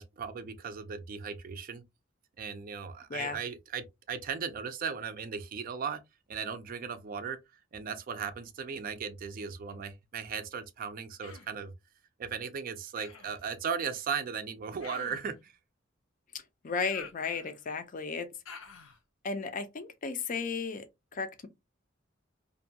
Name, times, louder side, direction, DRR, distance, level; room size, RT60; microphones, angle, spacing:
voice 1, 0.0-1.8 2.4-6.0 6.3-7.4 7.7-11.7 12.2-15.5, right 6 dB, 45° right, 0.4 m, -37 dB
Human voice, 11.2-11.6 13.0-13.4 14.8-15.4 16.8-17.7 18.5-19.0, left 5 dB, 90° left, 0.6 m, -48 dB
voice 2, 16.6-18.3 19.2-20.8 21.1-21.5, left 5 dB, 40° left, 0.4 m, -34 dB
2.6 x 2.2 x 2.7 m
head